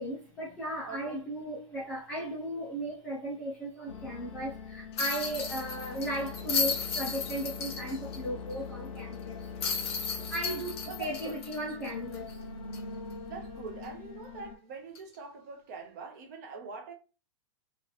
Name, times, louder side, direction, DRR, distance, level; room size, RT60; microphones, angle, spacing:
voice 1, 0.0-9.5 10.2-12.5, right 1 dB, 5° left, 0.3 m, -36 dB
voice 2, 0.8-1.2 10.9-11.4 13.3-16.9, right 5 dB, 30° right, 0.6 m, -43 dB
sound 1, 3.9-14.6, left 5 dB, 85° left, 0.8 m, -42 dB
sound 2, 5.0-8.2 8.5-8.6 9.6-12.3 12.7-12.8 14.9-15.1, left 5 dB, 50° left, 0.7 m, -34 dB
2.9 x 2.4 x 3.1 m
supercardioid pair, 175°, 17 cm